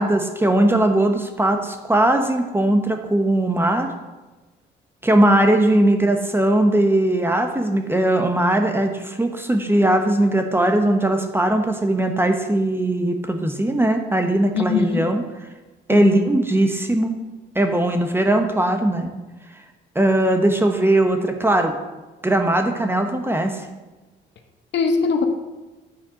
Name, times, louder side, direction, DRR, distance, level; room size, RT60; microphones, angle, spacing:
voice 1, 0.0-3.9 5.0-15.2 15.9-17.1 17.5-19.1 19.9-21.7 22.2-23.6, right 1 dB, 10° right, 5 dB, 1.0 m, -19 dB
voice 2, 14.5-15.1 15.9-16.3 24.7-25.2, left 5 dB, 65° left, 5 dB, 1.1 m, -21 dB
8.8 x 4.2 x 6.3 m, 1.1 s
cardioid pair, 90°, 20 cm